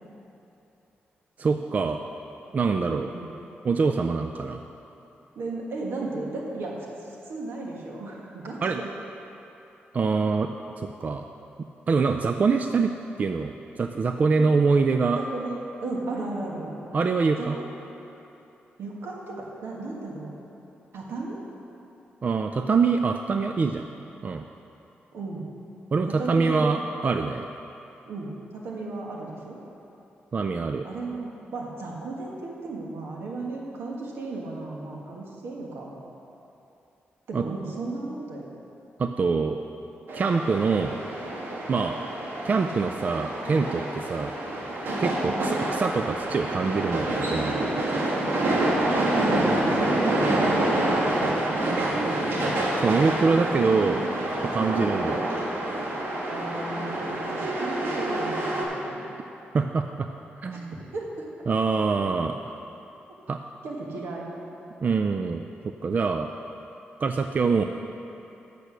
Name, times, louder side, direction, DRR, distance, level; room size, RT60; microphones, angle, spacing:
voice 1, 1.4-2.0 2.5-3.1 3.6-4.6 8.6-8.8 9.9-10.5 10.8-11.3 11.9-12.9 13.2-15.2 16.9-17.6 22.2-23.9 24.2-24.4 25.9-27.5 30.3-30.8 37.3-37.5 39.0-39.6 40.1-41.0 41.7-42.0 42.4-44.3 45.0-47.7 52.8-54.0 54.4-55.3 59.5-60.1 60.4-60.8 61.5-62.6 63.3-63.4 64.8-66.3 67.0-67.6, right 4 dB, 45° right, 6 dB, 0.3 m, -24 dB
voice 2, 5.3-8.9 14.4-14.5 15.2-16.8 17.4-17.7 18.8-20.4 20.9-21.4 25.1-25.5 26.1-26.8 28.1-29.6 30.8-35.9 37.3-38.5 45.2-45.4 48.7-49.4 49.7-52.3 56.3-59.1 60.5-60.6 60.9-61.3 63.6-64.3, right 3 dB, 85° right, -2 dB, 1.5 m, -34 dB
sound 1, 40.1-58.6, right 1 dB, 70° right, 1.5 m, -27 dB
8.3 x 6.8 x 6.1 m, 2.9 s
cardioid pair, 90°, 4 cm